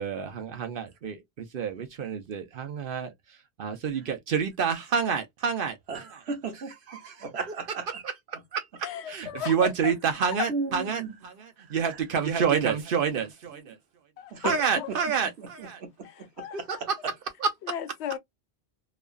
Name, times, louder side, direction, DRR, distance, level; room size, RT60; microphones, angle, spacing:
voice 1, 0.0-3.1 3.6-6.2 6.9-7.3 7.9-13.8 14.4-15.8 16.5-17.0 17.4-17.5, right 6 dB, 60° right, 0.9 m, -29 dB
voice 2, 5.9-6.7 7.2-7.9 10.5-11.2 14.3-14.6 14.9-15.0 15.4-15.9 16.4-16.5, right 4 dB, 75° right, 1.1 m, -34 dB
voice 3, 8.8-9.9 14.2-14.9 16.0-16.8 17.6-18.2, left 9 dB, 85° left, 0.9 m, -35 dB
3.0 x 2.4 x 2.2 m
omnidirectional pair, 1.1 m